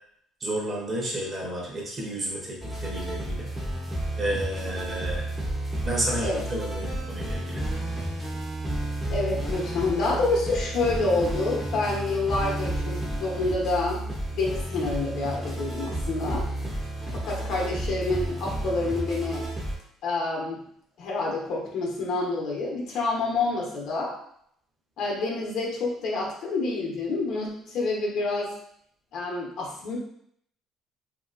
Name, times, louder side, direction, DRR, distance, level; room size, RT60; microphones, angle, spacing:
voice 1, 0.4-3.5 4.2-5.2 5.8-7.6, right 1 dB, 30° right, -3 dB, 0.9 m, -31 dB
sound 1, 2.6-19.8, right 1 dB, 10° right, 0.7 m, -31 dB
voice 2, 9.1-14.0 14.3-16.5 17.1-19.5 20.0-20.6 21.0-24.1 25.0-28.5 29.1-30.0, left 3 dB, 65° left, -3 dB, 0.9 m, -28 dB
2.9 x 2.8 x 2.5 m, 0.69 s
cardioid pair, 130°, 0 cm